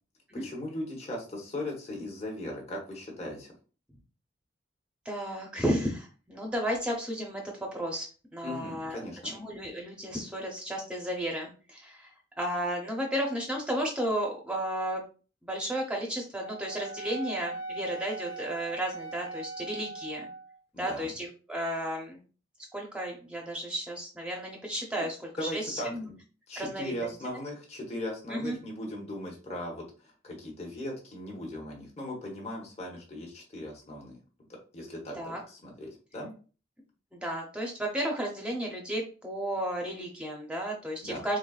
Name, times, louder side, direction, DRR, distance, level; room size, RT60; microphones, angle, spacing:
voice 1, 0.3-3.5 8.4-9.3 20.7-21.1 24.9-25.1 25.4-26.2 26.5-34.2 34.7-36.3 41.0-41.3, left 1 dB, 35° left, -1 dB, 0.9 m, -38 dB
voice 2, 5.1-8.1 8.3-9.0 9.3-12.1 12.4-15.0 15.4-20.3 20.8-22.2 22.7-26.1 26.6-27.1 28.3-28.6 35.2-35.4 37.1-41.4, equal, 5° right, 0 dB, 0.6 m, -33 dB
Wind instrument woodwind instrument, 16.4-20.6, right 3 dB, 75° left, 0.4 m, -40 dB
3.9 x 3.4 x 2.4 m, 0.36 s
head